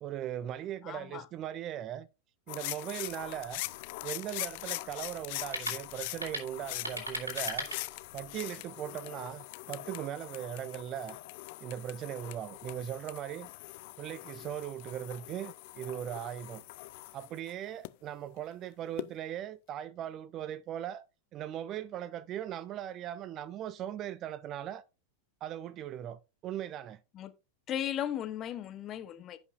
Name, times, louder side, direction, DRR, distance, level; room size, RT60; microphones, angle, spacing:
voice 1, 0.0-2.1 2.5-3.7 4.0-7.7 8.1-11.2 11.6-13.5 14.0-16.6 17.1-21.0 21.3-24.8 25.4-27.0, right 11 dB, 35° right, 0.5 m, -39 dB
voice 2, 0.8-1.3 27.1-27.3 27.7-29.4, left 10 dB, 30° left, 0.9 m, -36 dB
sound 1, 2.5-17.9 19.0-19.1, left 21 dB, 50° left, 0.4 m, -42 dB
sound 2, 3.0-8.4, right 1 dB, 80° right, 2.7 m, -41 dB
15.5 x 5.5 x 2.5 m
figure-of-eight pair, 90°, 0 cm